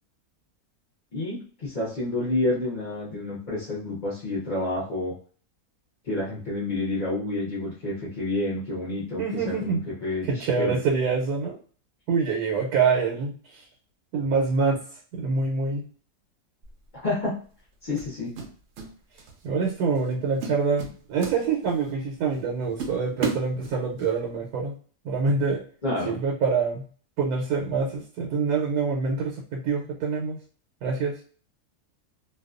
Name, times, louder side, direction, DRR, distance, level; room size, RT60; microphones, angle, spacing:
voice 1, 1.1-5.1 6.0-10.8 17.0-17.3 17.8-18.3 25.8-26.1, left 2 dB, 40° left, -6 dB, 0.7 m, -29 dB
voice 2, 9.2-9.8 10.3-11.6 12.1-13.6 14.1-14.8 15.1-15.8 19.4-24.7 25.0-25.6 26.0-26.8 27.2-30.4 30.8-31.2, right 5 dB, 90° right, 0 dB, 1.1 m, -25 dB
sound 1, 16.6-16.9 18.0-18.9 19.2-19.5 19.9-20.1 20.4-21.9 22.3-22.4 22.8-24.1, right 5 dB, 65° right, 0.7 m, -33 dB
2.6 x 2.3 x 2.4 m, 0.42 s
omnidirectional pair, 1.6 m